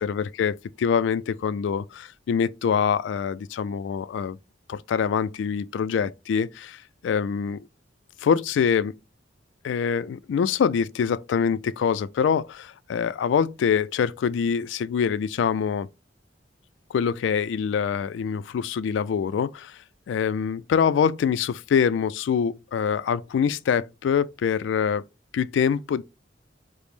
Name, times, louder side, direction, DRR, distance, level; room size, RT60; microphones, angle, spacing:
voice 1, 0.0-4.4 4.7-7.7 8.2-8.9 9.6-15.9 16.9-19.8 20.1-25.0 25.3-26.0, left 7 dB, 75° left, 0.3 m, -25 dB
5.0 x 2.0 x 3.2 m
head